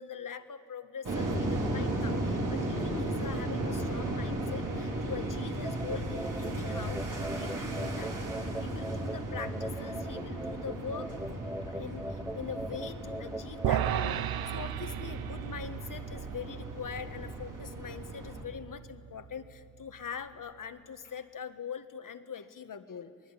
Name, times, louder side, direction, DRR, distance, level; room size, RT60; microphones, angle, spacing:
voice 1, 0.0-8.1 8.6-23.1, left 7 dB, 65° left, 9 dB, 1.5 m, -43 dB
sound 1, 1.0-18.4, right 1 dB, 60° right, 5.1 m, -35 dB
sound 2, 5.6-13.9, right 1 dB, 10° right, 1.1 m, -41 dB
sound 3, 13.6-20.0, right 11 dB, 85° right, 0.7 m, -36 dB
27.0 x 20.0 x 9.8 m, 2.4 s
cardioid pair, 50°, 35 cm